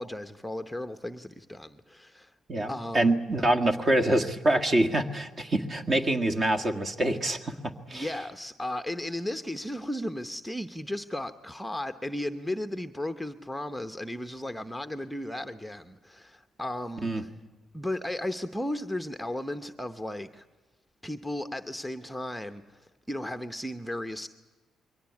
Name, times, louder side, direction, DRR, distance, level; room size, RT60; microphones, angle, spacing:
voice 1, 0.0-2.3 2.6-3.1 7.9-17.3 17.7-20.5 21.0-24.3, left 1 dB, ahead, 0.8 m, -35 dB
voice 2, 2.9-7.5 7.9-8.1 17.0-17.2, right 1 dB, 35° right, 1.7 m, -25 dB
22.5 x 18.0 x 9.7 m
cardioid pair, 90°, 0 cm